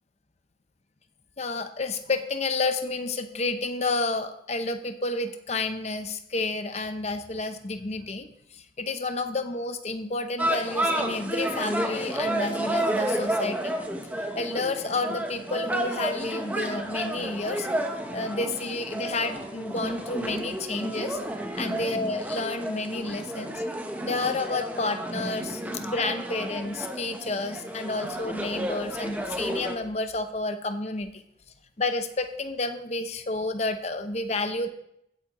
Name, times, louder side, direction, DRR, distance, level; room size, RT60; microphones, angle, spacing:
voice 1, 1.4-8.3 8.5-13.7 14.3-17.7 18.1-21.2 21.6-23.6 24.0-31.1 31.8-34.7, left 3 dB, 35° left, 8 dB, 0.8 m, -30 dB
sound 1, 10.4-29.7, right 1 dB, 10° right, 0.9 m, -31 dB
16.0 x 8.3 x 3.1 m, 0.77 s
head